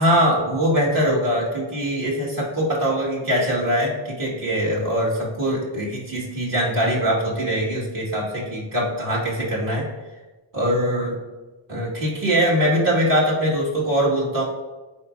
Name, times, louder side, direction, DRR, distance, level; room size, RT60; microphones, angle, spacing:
voice 1, 0.0-9.9 10.5-11.2 11.7-14.4, equal, 45° right, -5 dB, 2.1 m, -22 dB
10.0 x 4.3 x 2.7 m, 1.2 s
cardioid pair, 125°, 46 cm